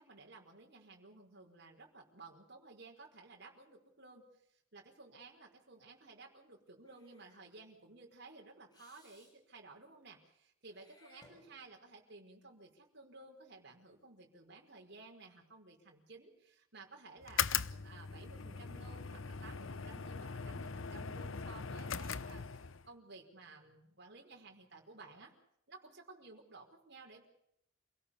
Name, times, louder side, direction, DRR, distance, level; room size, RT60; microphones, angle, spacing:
voice 1, 0.0-4.2 4.7-25.3 25.7-27.3, right 3 dB, 55° right, 1 dB, 5.2 m, -56 dB
Meow / Hiss, 6.8-7.5 8.7-9.3 10.7-11.9, left 1 dB, 20° left, 7.7 m, -64 dB
sound 1, 17.2-22.9, left 7 dB, 80° left, 0.9 m, -40 dB
28.0 x 17.5 x 6.8 m, 0.75 s
head